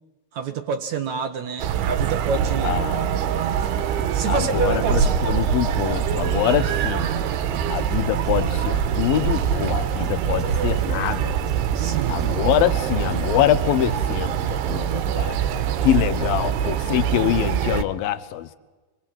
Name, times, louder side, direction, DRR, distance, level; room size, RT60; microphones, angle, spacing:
voice 1, 0.3-2.8 4.1-5.1 11.7-12.3, right 6 dB, 60° right, 8 dB, 2.1 m, -27 dB
sound 1, 1.6-17.8, right 8 dB, 85° right, 3.2 m, -24 dB
voice 2, 2.6-3.2 4.3-7.1 7.7-11.4 12.1-15.4 15.8-18.6, left 12 dB, 70° left, 13 dB, 2.8 m, -24 dB
sound 2, 3.5-13.3, right 5 dB, 30° right, 2.5 m, -38 dB
29.0 x 23.0 x 7.5 m, 1.2 s
omnidirectional pair, 4.5 m